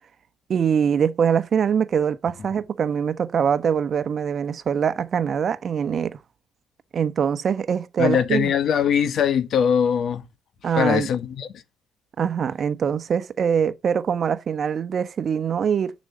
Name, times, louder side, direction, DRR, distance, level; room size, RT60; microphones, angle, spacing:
voice 1, 0.5-6.2 6.9-8.5 10.6-11.1 12.2-15.9, right 7 dB, 45° right, 0.9 m, -23 dB
voice 2, 8.0-10.2 10.8-11.5, left 8 dB, 60° left, 1.2 m, -21 dB
6.9 x 5.1 x 6.6 m
cardioid pair, 100°, 0 cm